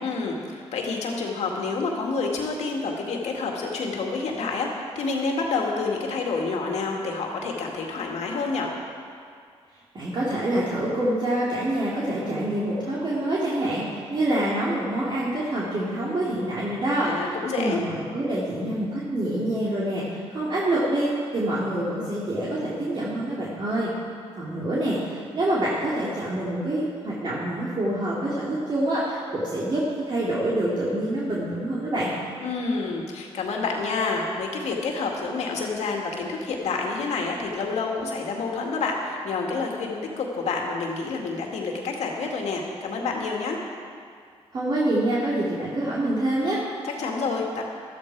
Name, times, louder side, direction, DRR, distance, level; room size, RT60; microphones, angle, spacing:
voice 1, 0.0-8.7 17.0-17.8 32.4-43.6 46.8-47.6, left 4 dB, 80° left, 0 dB, 2.2 m, -28 dB
voice 2, 9.9-17.1 17.5-21.1 21.3-23.9 24.4-32.1 44.5-46.6, right 1 dB, 45° right, -7 dB, 2.6 m, -26 dB
14.0 x 13.0 x 4.8 m, 2.2 s
cardioid pair, 90°, 11 cm